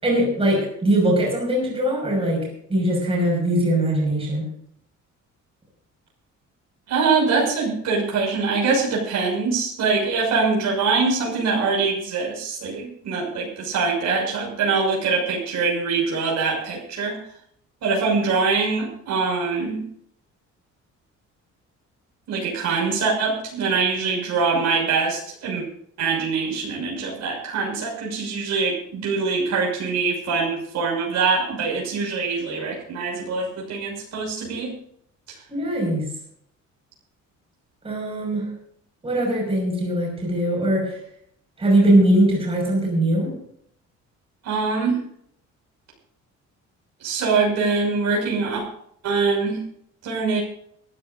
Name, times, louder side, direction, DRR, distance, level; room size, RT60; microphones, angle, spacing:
voice 1, 0.0-4.5 35.5-36.1 37.8-38.5 39.0-41.0 41.6-43.3, right 1 dB, 20° right, -1 dB, 5.8 m, -21 dB
voice 2, 6.9-17.2 17.8-19.8 22.3-25.6 26.0-34.7 35.3-35.4 44.4-45.0 47.0-48.6 49.0-49.6 50.0-50.4, right 4 dB, 65° right, -2 dB, 6.2 m, -23 dB
23.5 x 13.5 x 2.7 m, 0.67 s
cardioid pair, 170°, 30 cm